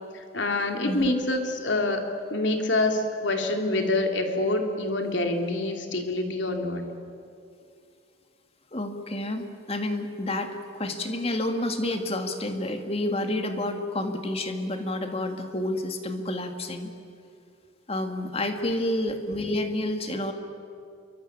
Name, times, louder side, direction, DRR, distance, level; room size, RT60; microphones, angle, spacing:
voice 1, 0.1-2.0 2.3-6.9, left 2 dB, 60° left, 4 dB, 3.1 m, -26 dB
voice 2, 8.7-16.9 17.9-20.3, left 1 dB, 30° left, 5 dB, 2.2 m, -29 dB
28.0 x 24.0 x 8.8 m, 2.4 s
head